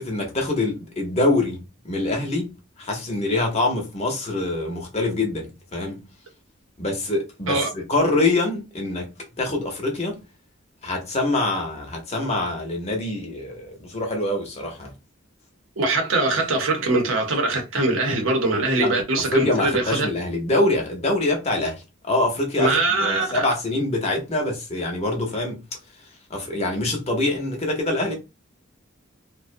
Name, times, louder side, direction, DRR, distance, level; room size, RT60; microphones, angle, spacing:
voice 1, 0.0-2.5 2.8-6.0 6.8-10.2 10.8-14.9 18.7-18.9 19.3-25.6 26.3-28.1, left 2 dB, 30° left, 0.7 m, -25 dB
voice 2, 15.8-20.1 22.6-23.5, right 2 dB, 75° right, 0.7 m, -22 dB
2.4 x 2.1 x 2.5 m
head